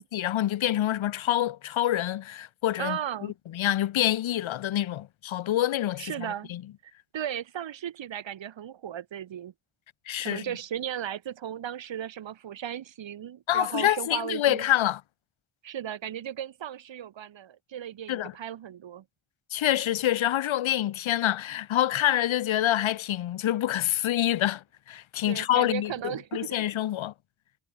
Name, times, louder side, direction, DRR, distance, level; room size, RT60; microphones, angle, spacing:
voice 1, 0.0-6.6 10.1-10.4 13.5-15.0 18.1-18.3 19.5-27.1, left 12 dB, 90° left, 0.7 m, -27 dB
voice 2, 2.8-3.3 6.0-6.5 6.8-9.5 10.2-14.6 15.6-19.0 25.3-26.6, right 10 dB, 70° right, 1.0 m, -36 dB
wide cardioid pair, 120°, 46 cm